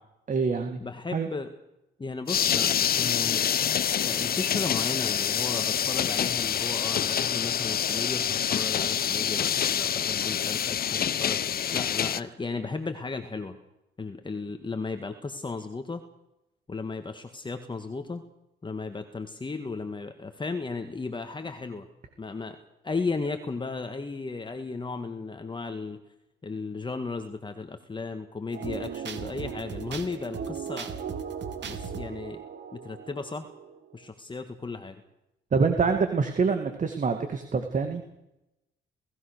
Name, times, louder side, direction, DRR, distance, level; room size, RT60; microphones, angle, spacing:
voice 1, 0.3-0.8 1.1-1.3 35.5-38.0, right 5 dB, 40° right, 6 dB, 2.4 m, -25 dB
voice 2, 0.8-1.5 2.0-11.4 11.7-13.6 14.0-16.0 16.7-18.2 18.6-21.9 22.2-22.6 22.8-26.0 26.4-30.9 31.6-32.4 32.7-33.5 33.9-35.0, left 4 dB, 25° left, 7 dB, 1.8 m, -35 dB
sound 1, 2.3-12.2, left 9 dB, 50° left, 0.8 m, -26 dB
sound 2, 28.5-34.0, right 7 dB, 65° right, 2.5 m, -37 dB
28.5 x 16.5 x 6.7 m, 0.89 s
cardioid pair, 90°, 20 cm